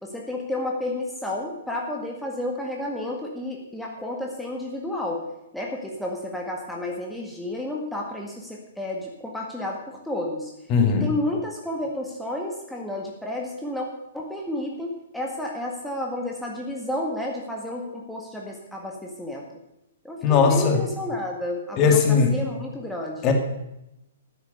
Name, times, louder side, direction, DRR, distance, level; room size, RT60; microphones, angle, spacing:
voice 1, 0.0-5.2 5.5-10.5 10.9-13.9 14.1-19.5 20.0-23.3, left 1 dB, ahead, -1 dB, 1.8 m, -31 dB
voice 2, 10.7-11.1 20.2-20.8 21.8-22.4 23.2-23.3, left 5 dB, 25° left, 4 dB, 2.3 m, -18 dB
14.0 x 10.0 x 6.9 m, 0.87 s
figure-of-eight pair, 120°, 0 cm